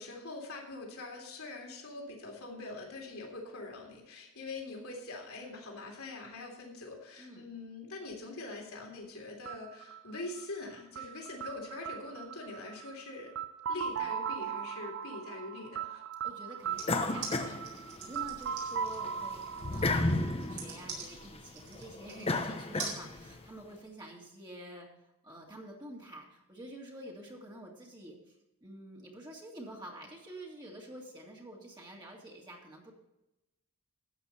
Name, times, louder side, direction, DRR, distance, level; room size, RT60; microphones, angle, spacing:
voice 1, 0.0-13.3 13.7-16.1, left 2 dB, 70° left, 1 dB, 3.2 m, -43 dB
sound 1, 9.5-21.2, right 7 dB, 55° right, 0.5 m, -39 dB
voice 2, 16.2-24.9 25.2-28.4 28.6-32.9, right 1 dB, 20° right, -2 dB, 2.1 m, -48 dB
sound 2, 16.8-18.4 18.8-23.4, left 2 dB, 25° left, 1.0 m, -33 dB
sound 3, 16.8-22.3 22.8-23.0, right 5 dB, 75° right, 4.2 m, -43 dB
13.0 x 8.6 x 4.3 m, 0.92 s
head